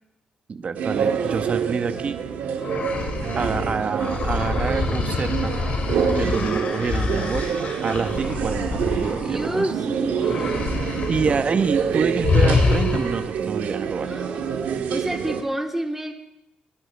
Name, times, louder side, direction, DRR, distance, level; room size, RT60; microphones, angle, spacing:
voice 1, 0.5-2.2 3.4-5.5 6.1-7.5 7.8-9.7 11.1-14.1, right 5 dB, 50° right, 8 dB, 1.3 m, -27 dB
sound 1, 0.7-15.4, right 7 dB, 90° right, 1.6 m, -27 dB
sound 2, 2.6-9.8 10.2-11.4 11.7-11.9 12.2-13.3, left 4 dB, 60° left, 2.8 m, -26 dB
voice 2, 6.2-6.7 9.0-11.0 14.0-16.1, right 1 dB, 10° right, 1 dB, 2.9 m, -30 dB
24.5 x 11.0 x 3.6 m, 0.85 s
cardioid pair, 85°, 3 cm